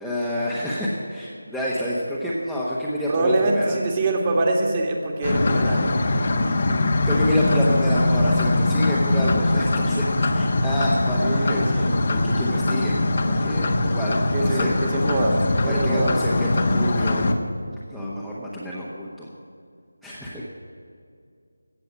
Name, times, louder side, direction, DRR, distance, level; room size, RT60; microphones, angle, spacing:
voice 1, 0.0-3.8 7.0-14.8 15.6-17.3 17.7-19.3 20.0-20.5, equal, ahead, -9 dB, 1.2 m, -28 dB
voice 2, 3.1-5.9 11.2-12.3 14.3-16.2, right 2 dB, 25° right, 1 dB, 1.9 m, -24 dB
sound 1, 5.2-17.4, left 2 dB, 45° left, 1.2 m, -22 dB
16.5 x 7.0 x 9.5 m, 2.4 s
figure-of-eight pair, 165°, 0 cm